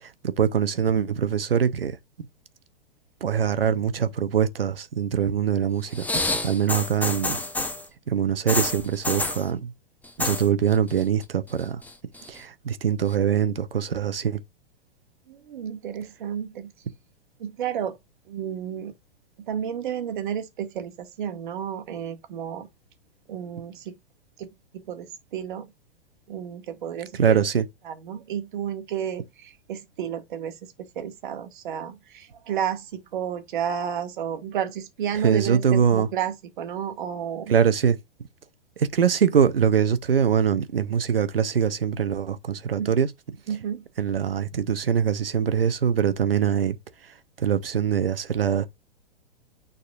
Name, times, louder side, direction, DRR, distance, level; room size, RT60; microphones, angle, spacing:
voice 1, 0.0-2.0 3.2-7.4 8.1-9.7 10.2-11.8 12.3-14.4 27.2-27.6 35.2-36.1 37.5-38.0 38.8-43.1 44.0-46.8 47.4-48.7, right 7 dB, 75° right, 1.0 m, -23 dB
sound 1, 5.9-7.9 8.5-9.5 10.0-10.5 10.7-11.2 11.6-12.4 13.1-13.2, left 2 dB, 5° left, 0.9 m, -28 dB
voice 2, 15.3-16.7 17.4-18.0 18.3-18.9 19.5-22.7 23.3-23.9 24.4-25.7 26.3-27.4 27.8-37.5 42.8-42.9 43.5-43.9, right 9 dB, 55° right, 1.7 m, -32 dB
9.4 x 4.1 x 2.5 m
figure-of-eight pair, 105°, 29 cm